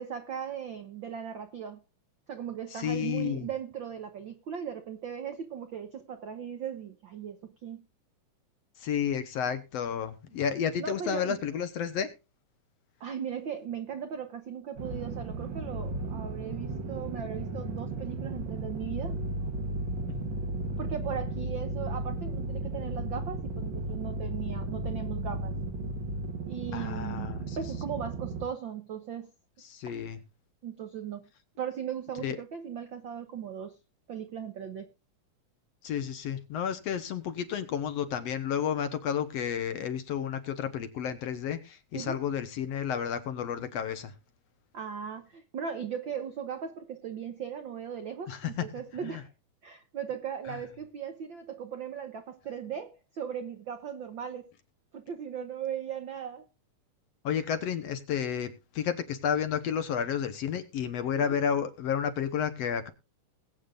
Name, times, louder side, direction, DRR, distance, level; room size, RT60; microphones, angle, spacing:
voice 1, 0.0-1.8 2.3-7.8 10.8-11.4 13.0-19.2 20.8-25.6 26.5-29.3 30.6-31.3 31.6-33.8 34.1-34.9 41.9-42.2 44.7-49.3 49.6-54.5 54.9-56.5 61.1-61.4, right 8 dB, 75° right, 1.1 m, -38 dB
voice 2, 2.8-3.5 8.8-12.1 20.1-20.3 26.7-27.4 29.7-30.2 32.2-32.4 35.8-44.1 48.3-48.7 49.1-49.2 57.2-62.9, left 8 dB, 65° left, 1.9 m, -31 dB
sound 1, 14.8-28.5, right 2 dB, 45° right, 1.7 m, -35 dB
20.5 x 8.6 x 2.5 m
omnidirectional pair, 3.6 m